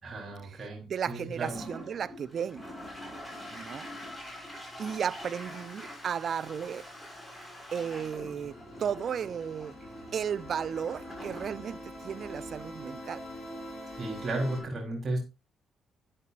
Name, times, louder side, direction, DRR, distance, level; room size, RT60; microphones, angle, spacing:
voice 1, 0.0-1.6 14.0-15.2, right 2 dB, 40° right, 3.5 m, -34 dB
voice 2, 0.9-2.6 3.5-3.9 4.8-6.8 7.7-9.7 10.1-13.2, right 7 dB, 55° right, 0.7 m, -34 dB
Toilet flush, 1.3-14.4, left 1 dB, 10° left, 5.9 m, -46 dB
sound 1, 7.8-14.6, equal, 45° left, 6.3 m, -44 dB
11.0 x 10.0 x 2.5 m
cardioid pair, 90°, 0 cm